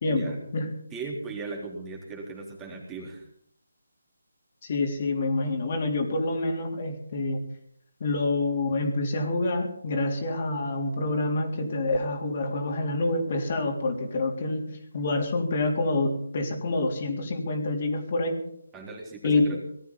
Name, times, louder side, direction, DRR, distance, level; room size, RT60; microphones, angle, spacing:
voice 1, 0.0-0.7 4.6-7.4 8.0-14.6 14.9-18.4 19.2-19.6, left 2 dB, 45° left, 3 dB, 3.7 m, -27 dB
voice 2, 0.9-3.3 18.7-19.6, right 3 dB, 10° right, -1 dB, 3.8 m, -38 dB
19.0 x 13.0 x 5.6 m, 0.67 s
figure-of-eight pair, 160°, 0 cm